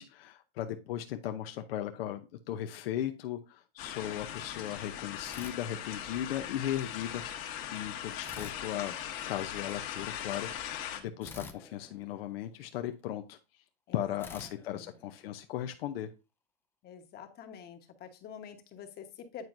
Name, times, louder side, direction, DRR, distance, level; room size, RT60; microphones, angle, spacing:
voice 1, 0.0-2.2 2.5-8.9 9.2-13.4 13.9-16.1, left 11 dB, 85° left, 6 dB, 0.8 m, -37 dB
sound 1, 3.8-11.0, left 10 dB, 60° left, 1.5 m, -40 dB
sound 2, 5.2-6.4 8.2-9.6 11.2-12.9 14.2-15.8, left 4 dB, 10° left, 0.5 m, -51 dB
voice 2, 13.9-14.9 16.8-19.4, left 7 dB, 35° left, 6 dB, 1.1 m, -48 dB
9.2 x 4.5 x 2.5 m, 0.30 s
supercardioid pair, 135°, 29 cm